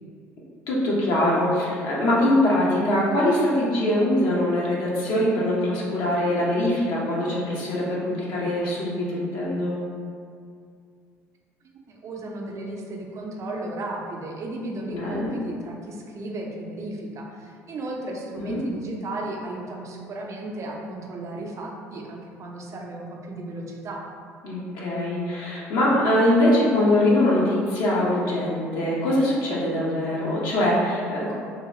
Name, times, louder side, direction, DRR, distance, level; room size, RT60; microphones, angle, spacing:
voice 1, 0.7-9.8 14.9-15.3 18.3-18.6 24.4-31.3, left 1 dB, 65° left, -6 dB, 0.8 m, -23 dB
voice 2, 11.7-24.0, right 2 dB, 40° right, 0 dB, 0.5 m, -34 dB
2.8 x 2.2 x 2.9 m, 2.3 s
hypercardioid pair, 60°, 7 cm